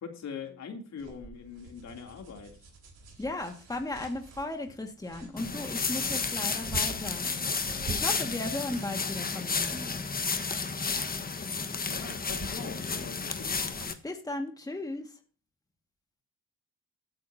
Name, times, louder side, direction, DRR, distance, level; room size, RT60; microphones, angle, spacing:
voice 1, 0.0-2.5 11.9-13.8, left 6 dB, 60° left, 3 dB, 3.0 m, -42 dB
sound 1, 1.0-13.9, right 3 dB, 55° right, 4.3 m, -47 dB
voice 2, 3.2-10.0 14.0-15.2, left 2 dB, 10° left, 4 dB, 1.8 m, -36 dB
sound 2, 5.4-13.9, left 4 dB, 30° left, 1.4 m, -32 dB
16.5 x 8.9 x 2.8 m, 0.39 s
cardioid pair, 90°, 30 cm